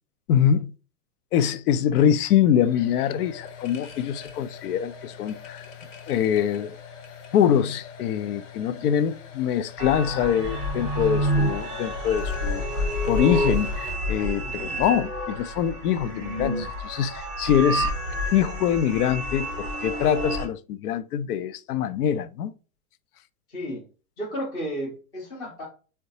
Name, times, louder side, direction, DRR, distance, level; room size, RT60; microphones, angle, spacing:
voice 1, 0.3-0.7 1.3-5.6 6.1-6.8 7.3-17.9 18.3-22.5, left 9 dB, 90° left, 0.5 m, -24 dB
sound 1, 2.6-13.9, left 7 dB, 60° left, 0.8 m, -44 dB
sound 2, 9.8-20.5, equal, 15° right, 0.8 m, -28 dB
voice 2, 14.4-14.8 23.5-23.8 24.2-25.7, equal, 10° left, 0.4 m, -33 dB
3.8 x 2.2 x 2.7 m
supercardioid pair, 160°, 44 cm